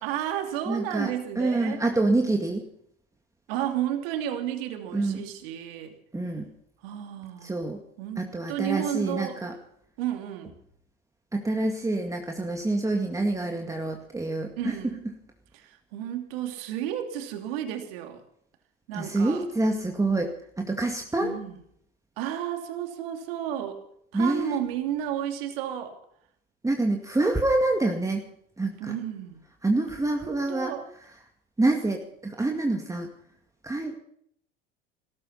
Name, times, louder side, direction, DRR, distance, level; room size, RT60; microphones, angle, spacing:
voice 1, 0.0-1.8 3.5-5.9 6.8-7.6 8.0-9.4 10.0-10.6 14.6-15.0 15.5-18.2 18.9-19.5 21.2-21.5 22.2-23.8 24.1-25.9 28.8-29.4 30.2-30.8, right 11 dB, 70° right, 5 dB, 3.0 m, -32 dB
voice 2, 0.7-2.6 4.9-5.2 6.1-6.5 7.4-7.8 8.2-9.5 11.3-14.8 18.9-21.4 24.1-24.6 26.6-28.2 28.6-28.9 29.6-30.7 31.6-33.1 33.6-33.9, right 2 dB, 10° right, 2 dB, 2.1 m, -26 dB
17.0 x 14.0 x 5.7 m, 0.68 s
hypercardioid pair, 90°, 30 cm